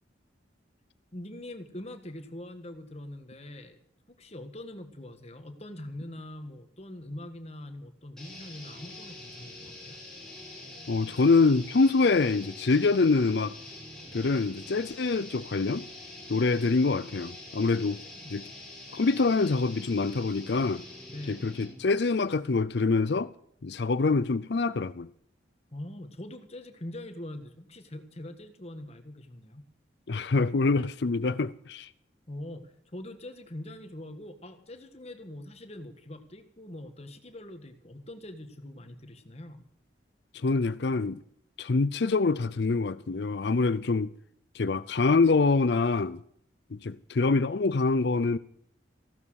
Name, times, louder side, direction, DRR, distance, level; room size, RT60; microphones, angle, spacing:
voice 1, 1.1-3.8 4.2-10.0 18.2-18.3 21.1-21.5 25.7-29.6 32.3-39.7, left 1 dB, 35° left, 1.7 m, -43 dB
sound 1, 8.2-21.9, left 2 dB, ahead, 6.2 m, -45 dB
voice 2, 10.9-13.6 14.1-15.8 16.3-18.0 18.3-18.4 18.9-20.8 21.3-23.3 23.6-25.1 30.1-31.9 40.3-41.2 41.6-44.1 44.5-46.2 46.7-48.4, left 3 dB, 60° left, 0.5 m, -25 dB
16.0 x 12.5 x 6.4 m
head